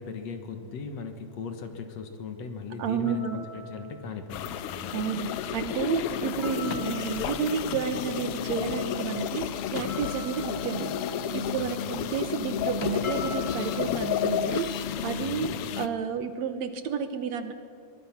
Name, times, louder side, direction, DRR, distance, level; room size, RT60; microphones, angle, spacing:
voice 1, 0.0-5.0 11.3-11.8 15.2-15.5, left 5 dB, 60° left, 7 dB, 2.4 m, -38 dB
voice 2, 2.8-3.4 4.9-10.9 11.3-15.5 15.8-17.5, right 6 dB, 65° right, 9 dB, 2.1 m, -31 dB
sound 1, 3.1-13.8, left 1 dB, 25° left, 2.2 m, -45 dB
sound 2, 4.3-15.9, left 9 dB, 80° left, 1.3 m, -31 dB
23.0 x 19.0 x 6.0 m, 2.5 s
omnidirectional pair, 3.6 m